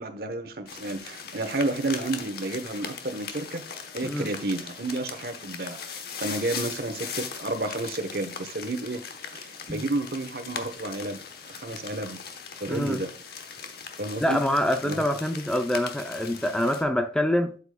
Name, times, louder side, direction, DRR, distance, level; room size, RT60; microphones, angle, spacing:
voice 1, 0.0-3.6 3.9-9.0 9.3-12.2 12.6-13.1 14.0-14.4 14.8-15.0, right 2 dB, 55° right, 1.0 m, -31 dB
sound 1, 0.7-16.8, left 6 dB, 60° left, 1.0 m, -39 dB
voice 2, 12.7-13.0 14.2-17.6, left 1 dB, 5° left, 0.5 m, -25 dB
8.3 x 8.2 x 2.2 m
head